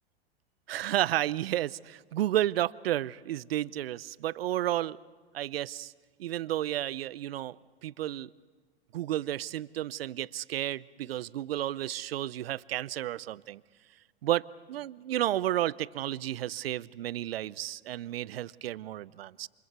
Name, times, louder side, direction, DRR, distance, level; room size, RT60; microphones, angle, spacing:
voice 1, 0.7-5.0 5.3-5.9 6.2-7.6 7.8-8.3 8.9-13.4 14.2-14.4 14.7-19.5, right 13 dB, 75° right, 20 dB, 0.6 m, -32 dB
28.5 x 26.5 x 4.7 m, 1.5 s
hypercardioid pair, 100°, 30 cm